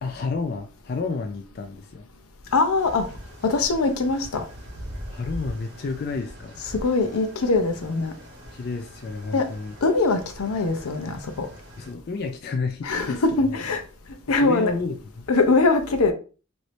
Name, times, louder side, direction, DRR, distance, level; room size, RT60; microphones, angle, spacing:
voice 1, 0.0-2.1 5.1-6.6 8.5-9.7 11.8-13.2 14.3-15.3, left 4 dB, 45° left, 0.3 m, -30 dB
voice 2, 2.5-3.1 3.4-4.4 6.7-8.1 9.3-9.4 9.8-11.5 12.8-13.8 14.3-14.7 15.3-16.1, left 3 dB, 85° left, 0.6 m, -22 dB
sound 1, 2.7-11.9, equal, 50° right, 0.9 m, -42 dB
3.0 x 2.6 x 3.0 m
head